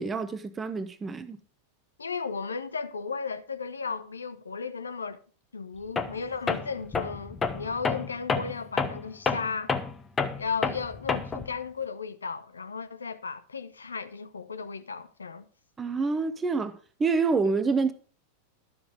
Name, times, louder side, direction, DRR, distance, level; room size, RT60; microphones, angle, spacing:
voice 1, 0.0-1.4 15.8-17.9, right 4 dB, 15° right, 0.9 m, -27 dB
voice 2, 2.0-5.2 5.5-9.7 10.4-15.4, left 5 dB, 75° left, 0.7 m, -35 dB
Tools, 6.0-6.2 6.5-11.5, left 4 dB, 20° left, 1.0 m, -29 dB
12.0 x 7.1 x 5.0 m
figure-of-eight pair, 90°, 0 cm